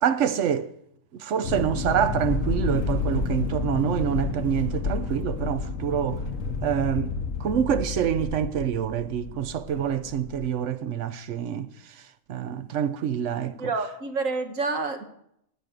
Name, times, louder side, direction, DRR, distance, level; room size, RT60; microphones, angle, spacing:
voice 1, 0.0-0.7 1.1-6.2 6.6-11.7 12.3-13.6, right 9 dB, 70° right, 1.0 m, -26 dB
sound 1, 1.4-10.5, left 4 dB, 75° left, 1.4 m, -30 dB
voice 2, 13.6-15.0, right 3 dB, 90° right, 1.6 m, -28 dB
12.5 x 5.3 x 8.9 m
omnidirectional pair, 1.3 m